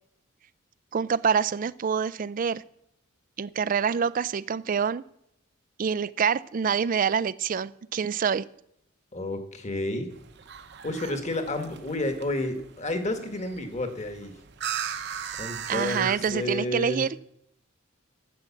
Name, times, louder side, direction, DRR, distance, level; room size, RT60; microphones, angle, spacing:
voice 1, 0.9-2.6 3.4-5.0 5.8-8.5 15.7-17.2, right 6 dB, 40° right, 19 dB, 0.4 m, -26 dB
voice 2, 9.1-10.1 10.8-14.3 15.4-17.0, left 1 dB, 35° left, 7 dB, 1.5 m, -30 dB
sound 1, 10.1-16.5, right 8 dB, 55° right, 0.8 m, -38 dB
13.0 x 7.9 x 7.1 m, 0.76 s
head